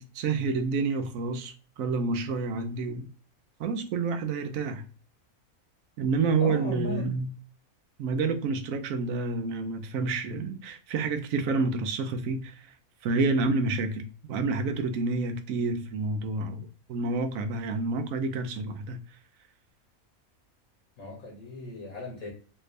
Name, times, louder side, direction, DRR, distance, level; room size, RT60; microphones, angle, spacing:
voice 1, 0.0-3.1 3.6-4.9 6.0-7.3 8.0-12.7 13.0-19.0, right 3 dB, 75° right, 1.0 m, -29 dB
voice 2, 6.4-7.1 21.0-22.3, left 1 dB, 65° left, 1.4 m, -37 dB
3.3 x 2.6 x 3.2 m
omnidirectional pair, 1.5 m